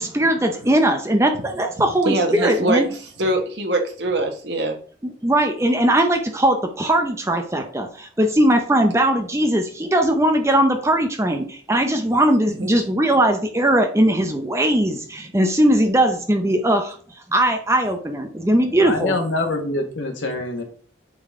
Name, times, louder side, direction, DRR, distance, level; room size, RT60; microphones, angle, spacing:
voice 1, 0.0-2.9 5.0-17.0 17.3-19.2, right 1 dB, 15° right, 5 dB, 0.7 m, -19 dB
voice 2, 2.0-4.8 12.5-12.7, right 2 dB, 70° right, 3 dB, 1.4 m, -23 dB
voice 3, 18.8-20.6, left 2 dB, 85° left, 3 dB, 1.5 m, -25 dB
8.5 x 3.9 x 3.6 m, 0.43 s
head